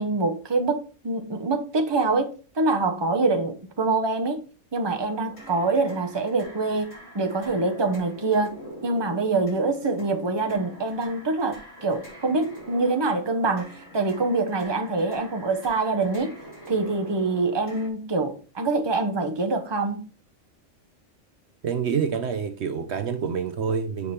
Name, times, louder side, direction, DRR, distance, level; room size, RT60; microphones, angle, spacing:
voice 1, 0.0-4.4 4.7-8.5 8.8-16.4 16.7-20.0, right 3 dB, 25° right, 0.9 m, -25 dB
sound 1, 5.0-17.9, equal, 60° left, 3.2 m, -45 dB
voice 2, 21.6-24.1, right 6 dB, 65° right, 0.9 m, -27 dB
7.1 x 5.0 x 4.3 m
omnidirectional pair, 1.3 m